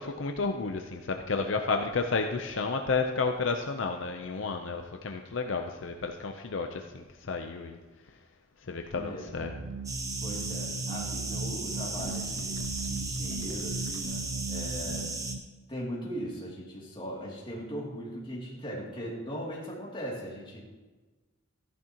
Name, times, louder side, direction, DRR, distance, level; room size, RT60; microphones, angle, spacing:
voice 1, 0.0-7.8 8.7-9.5 12.0-12.1 12.6-12.7, left 4 dB, 70° left, 5 dB, 0.6 m, -31 dB
voice 2, 8.9-9.5 10.2-15.1 15.7-20.7, equal, 25° left, -4 dB, 2.6 m, -39 dB
sound 1, 9.4-15.4, right 3 dB, 50° right, 0.5 m, -37 dB
sound 2, 9.9-15.4, right 3 dB, 15° right, 0.9 m, -36 dB
14.5 x 11.0 x 2.9 m, 1.3 s
head